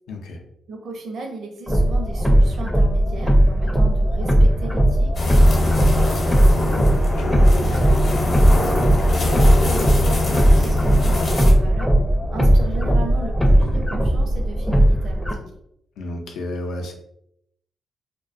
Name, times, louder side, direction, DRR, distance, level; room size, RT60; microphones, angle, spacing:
voice 1, 0.1-0.4 7.0-7.4 16.0-16.9, left 1 dB, 90° left, 2 dB, 0.4 m, -32 dB
voice 2, 0.7-6.5 7.4-8.7 9.0-11.9 12.3-15.4, right 3 dB, 70° right, 2 dB, 0.6 m, -36 dB
sound 1, 1.7-15.3, right 1 dB, 5° left, 0.4 m, -17 dB
sound 2, 5.1-11.5, left 2 dB, 50° left, 0.7 m, -23 dB
2.3 x 2.2 x 2.5 m, 0.75 s
cardioid pair, 90°, 0 cm